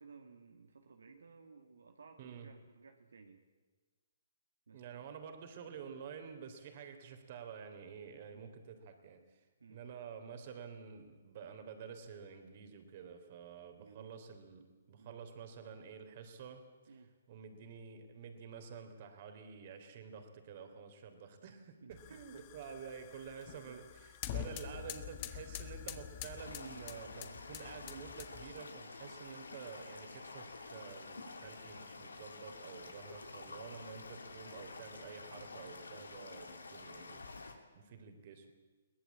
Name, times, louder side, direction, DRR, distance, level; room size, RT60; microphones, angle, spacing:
voice 1, 0.0-3.4 4.7-5.1 5.7-5.8 8.3-8.6 9.6-9.8 13.8-14.2 15.0-15.2 16.9-17.2 21.8-22.4 23.6-23.9 24.7-24.9 25.8-26.0 29.9-30.0 38.0-38.1, right 4 dB, 75° right, 4 dB, 2.1 m, -58 dB
voice 2, 2.2-2.5 4.7-16.6 17.3-38.5, right 6 dB, 45° right, 7 dB, 3.5 m, -50 dB
sound 1, 21.9-28.6, left 11 dB, 35° left, 1.7 m, -46 dB
sound 2, 26.4-37.5, left 3 dB, 85° left, 2.9 m, -49 dB
22.5 x 18.5 x 8.6 m, 1.3 s
hypercardioid pair, 135°, 0 cm